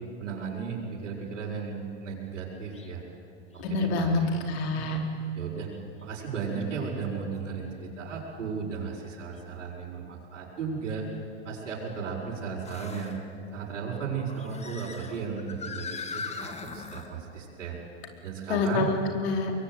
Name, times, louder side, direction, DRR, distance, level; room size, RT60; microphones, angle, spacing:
voice 1, 0.2-3.0 3.5-4.3 4.7-4.8 5.4-5.7 6.0-11.0 11.4-13.1 13.5-17.8 18.2-18.9, right 5 dB, 80° right, -3 dB, 7.1 m, -35 dB
sound 1, 2.7-2.9 3.5-3.6 5.7-5.8 9.3-9.4 12.6-13.2 14.1-17.1, left 5 dB, 15° left, 2.0 m, -40 dB
voice 2, 3.6-5.0 18.5-19.5, left 3 dB, 60° left, 2 dB, 4.6 m, -27 dB
25.0 x 22.0 x 9.5 m, 2.5 s
hypercardioid pair, 115°, 36 cm